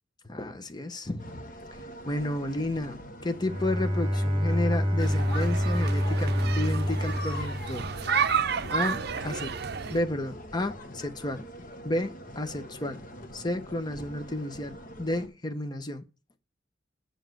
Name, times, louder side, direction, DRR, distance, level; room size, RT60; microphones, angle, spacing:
voice 1, 0.2-1.5 2.1-7.9 8.7-9.5 9.9-11.4 11.8-13.0 13.3-16.0, left 1 dB, 20° left, 0.9 m, -32 dB
sound 1, 1.2-15.3, left 1 dB, 45° left, 1.5 m, -43 dB
Bowed string instrument, 3.4-8.3, equal, 30° right, 2.2 m, -27 dB
sound 2, 5.0-10.0, right 7 dB, 55° right, 0.6 m, -31 dB
7.3 x 6.7 x 7.8 m
head